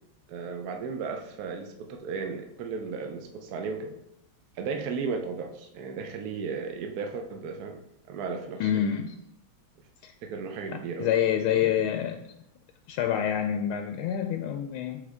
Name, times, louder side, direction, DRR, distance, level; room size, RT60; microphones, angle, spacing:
voice 1, 0.3-4.0 4.6-8.8 10.2-11.1, right 5 dB, 70° right, 3 dB, 0.9 m, -35 dB
voice 2, 8.6-9.2 10.0-10.1 10.7-12.2 12.9-15.0, left 9 dB, 85° left, 6 dB, 1.4 m, -27 dB
8.5 x 3.9 x 3.5 m, 0.80 s
omnidirectional pair, 2.3 m